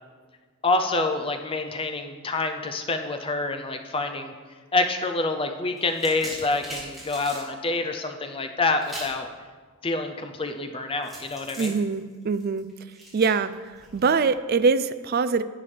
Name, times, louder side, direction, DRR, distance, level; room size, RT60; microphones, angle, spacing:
voice 1, 0.6-4.3 4.7-9.3 9.8-11.7, left 3 dB, 25° left, 6 dB, 0.5 m, -27 dB
sound 1, 5.8-7.5 8.8-9.2 11.0-14.1, right 1 dB, ahead, 2.7 m, -41 dB
voice 2, 11.6-12.7 13.1-15.4, right 4 dB, 45° right, 13 dB, 0.3 m, -23 dB
11.0 x 8.9 x 3.3 m, 1.5 s
head